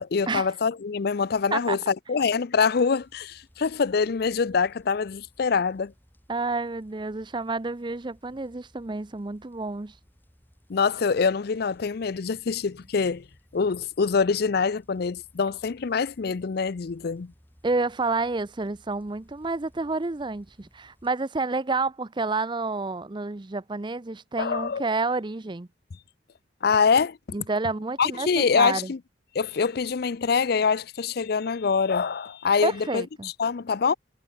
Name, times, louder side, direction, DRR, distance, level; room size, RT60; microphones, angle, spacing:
voice 1, 0.0-5.9 10.7-13.3 13.5-17.3 24.4-24.9 26.6-27.2 28.0-29.0 29.3-33.9, left 5 dB, 55° left, 0.5 m, -25 dB
sound 1, 3.0-21.1, equal, 10° left, 6.8 m, -60 dB
voice 2, 6.3-9.9 17.6-25.7 27.3-28.9 32.6-33.3, right 3 dB, 25° right, 0.6 m, -29 dB
head